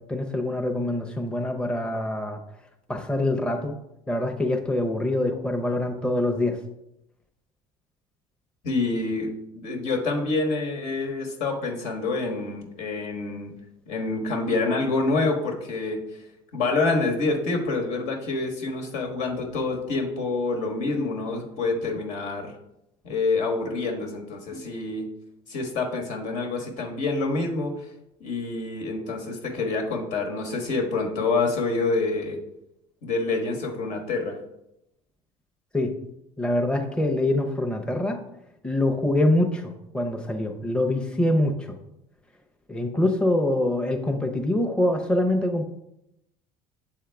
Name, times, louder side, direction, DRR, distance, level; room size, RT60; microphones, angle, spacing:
voice 1, 0.1-2.4 2.9-3.7 4.1-6.6 35.7-35.9 36.4-38.2 38.6-41.8 42.7-45.7, left 1 dB, 5° left, 2 dB, 0.7 m, -24 dB
voice 2, 8.6-13.5 13.9-16.0 16.5-22.5 23.0-25.0 25.5-27.7 28.2-32.4 33.0-34.4, left 3 dB, 70° left, 2 dB, 1.4 m, -27 dB
7.4 x 3.7 x 3.4 m, 0.84 s
supercardioid pair, 90°, 13 cm